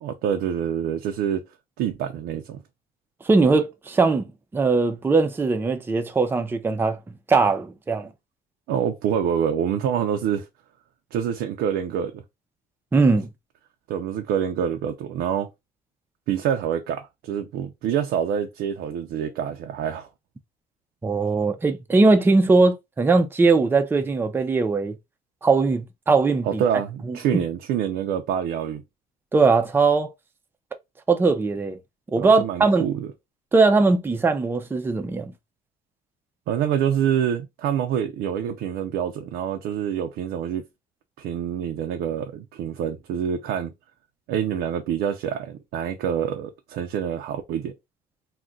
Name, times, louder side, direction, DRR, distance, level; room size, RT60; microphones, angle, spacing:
voice 1, 0.0-1.4 1.8-2.6 8.7-10.5 11.1-12.2 13.9-15.5 16.3-20.1 26.4-28.8 32.2-33.1 36.5-40.6 41.2-43.7 44.3-47.7, right 9 dB, 80° right, 0.5 m, -26 dB
voice 2, 3.2-7.0 7.3-8.1 12.9-13.3 21.0-24.9 25.4-26.6 27.1-27.2 29.3-30.1 31.1-31.8 32.1-32.9 33.5-35.3, right 3 dB, 15° right, 0.4 m, -20 dB
2.4 x 2.2 x 3.7 m
cardioid pair, 110°, 17 cm